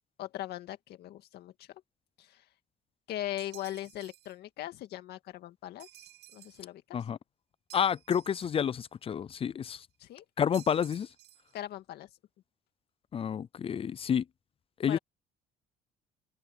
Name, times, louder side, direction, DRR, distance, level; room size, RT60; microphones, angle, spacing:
voice 1, 0.2-1.8 2.2-2.4 3.1-6.1 6.3-7.0 10.0-10.3 11.5-12.1 14.8-15.0, left 13 dB, 75° left, 2.0 m, -40 dB
sound 1, 3.4-4.4 5.8-6.7 7.7-8.9 10.5-11.5, right 15 dB, 75° right, 1.0 m, -54 dB
voice 2, 7.7-9.9 10.4-11.1 13.1-14.2 14.8-15.0, left 8 dB, 35° left, 0.4 m, -29 dB
cardioid pair, 110°, 17 cm